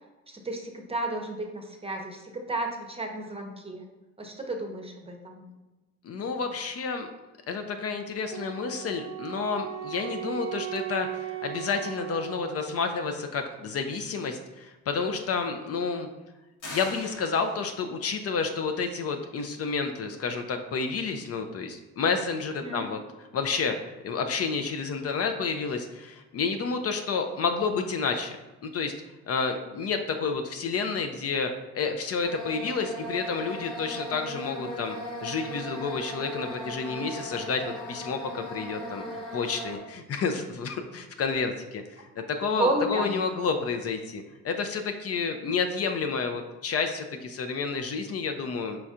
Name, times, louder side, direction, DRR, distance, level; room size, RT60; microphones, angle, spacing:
voice 1, 0.3-3.8 4.2-5.4 22.6-22.9 39.0-39.1 42.5-43.2, right 2 dB, 20° right, 2 dB, 0.7 m, -32 dB
voice 2, 6.0-7.1 7.5-16.1 16.7-23.0 23.3-28.3 28.6-28.9 29.3-35.0 35.2-39.0 39.3-48.8, left 5 dB, 55° left, 6 dB, 0.5 m, -30 dB
Wind instrument woodwind instrument, 8.3-13.1, right 13 dB, 60° right, 0.5 m, -37 dB
sound 1, 16.6-18.0, left 1 dB, 85° left, 1.4 m, -42 dB
sound 2, 32.2-39.8, equal, 15° left, 1.1 m, -38 dB
4.4 x 4.0 x 2.4 m, 1.1 s
cardioid pair, 90°, 30 cm